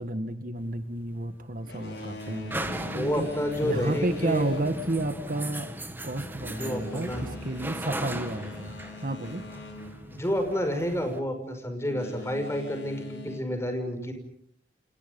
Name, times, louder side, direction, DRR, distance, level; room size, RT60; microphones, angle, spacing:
voice 1, 0.0-3.3 3.6-5.7 6.0-9.5, right 1 dB, 50° right, 9 dB, 1.7 m, -31 dB
sound 1, 0.6-11.2, right 1 dB, 10° right, 2.0 m, -38 dB
Boat Water vehicle, 1.6-11.0 11.8-13.4, left 3 dB, 70° left, 5.5 m, -43 dB
voice 2, 2.9-4.5 6.6-7.2 10.1-14.1, equal, 15° left, 6 dB, 5.7 m, -29 dB
29.5 x 29.0 x 5.4 m, 0.65 s
head